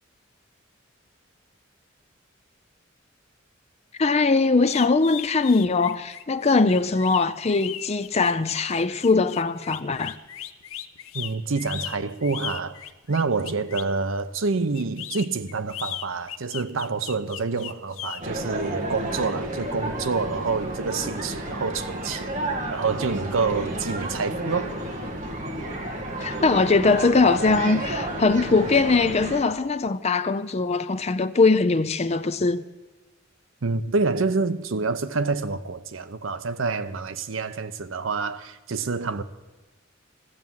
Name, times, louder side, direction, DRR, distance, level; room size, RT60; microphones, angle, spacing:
voice 1, 4.0-10.1 22.6-22.7 26.2-32.6, left 3 dB, 30° left, 0.5 m, -21 dB
sound 1, 4.6-14.0 14.7-18.2, left 12 dB, 85° left, 0.6 m, -37 dB
voice 2, 11.1-12.8 13.1-22.4 22.7-24.7 33.6-39.2, right 4 dB, 75° right, 0.7 m, -27 dB
sound 2, 18.2-29.4, right 1 dB, 40° right, 1.8 m, -31 dB
14.5 x 7.1 x 9.3 m
head